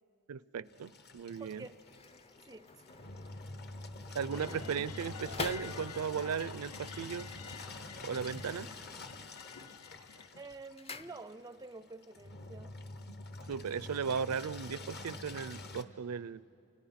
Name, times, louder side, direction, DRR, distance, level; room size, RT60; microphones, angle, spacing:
voice 1, 0.3-1.7 4.1-7.3 8.0-8.7 13.5-16.4, right 6 dB, 75° right, 0.5 m, -37 dB
Engine, 0.7-15.8, left 2 dB, 50° left, 1.1 m, -47 dB
sound 1, 1.3-6.3 7.3-8.5 8.8-9.3 9.6-11.7 12.0-12.1, left 3 dB, 25° left, 0.6 m, -47 dB
voice 2, 1.4-1.7 2.4-2.6 10.4-12.8, right 3 dB, 15° right, 0.4 m, -48 dB
sound 2, 4.3-10.3, left 6 dB, 85° left, 0.8 m, -50 dB
28.5 x 28.0 x 5.8 m
head